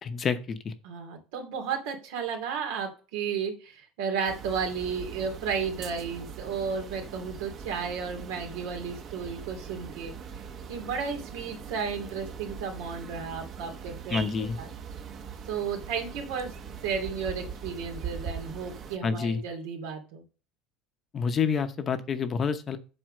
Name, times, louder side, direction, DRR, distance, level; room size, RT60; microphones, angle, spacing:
voice 1, 0.0-0.7 14.1-14.6 19.0-19.4 21.1-22.8, left 6 dB, 25° left, 9 dB, 0.8 m, -28 dB
voice 2, 0.8-10.1 10.7-14.3 14.6-14.7 15.5-16.5 16.8-20.2, right 6 dB, 85° right, 4 dB, 2.7 m, -33 dB
sound 1, 4.3-19.0, right 6 dB, 35° right, 0.9 m, -41 dB
7.9 x 4.7 x 6.5 m, 0.35 s
cardioid pair, 155°, 0 cm